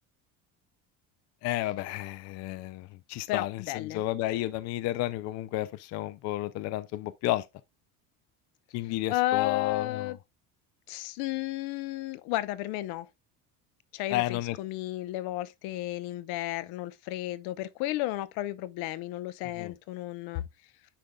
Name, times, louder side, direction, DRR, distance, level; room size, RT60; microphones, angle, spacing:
voice 1, 1.4-7.5 8.7-10.1 14.1-14.6 19.6-19.7, left 15 dB, 45° left, 0.4 m, -32 dB
voice 2, 3.3-4.0 9.1-10.2 10.9-13.1 13.9-20.4, left 16 dB, 75° left, 0.8 m, -33 dB
10.0 x 5.1 x 2.2 m
cardioid pair, 175°, 38 cm